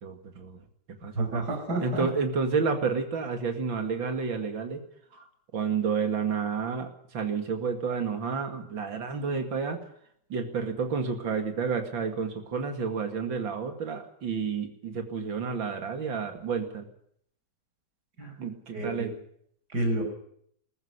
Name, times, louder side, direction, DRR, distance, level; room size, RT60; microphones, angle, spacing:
voice 1, 0.0-0.6 1.0-1.4 1.8-4.8 5.1-5.3 5.5-9.8 10.3-16.9 18.4-19.1, right 5 dB, 80° right, 5 dB, 3.0 m, -30 dB
voice 2, 1.1-2.1 18.2-18.3 18.7-19.1 19.7-20.0, right 1 dB, 55° right, 3 dB, 6.1 m, -29 dB
20.5 x 14.0 x 9.8 m, 0.69 s
omnidirectional pair, 2.0 m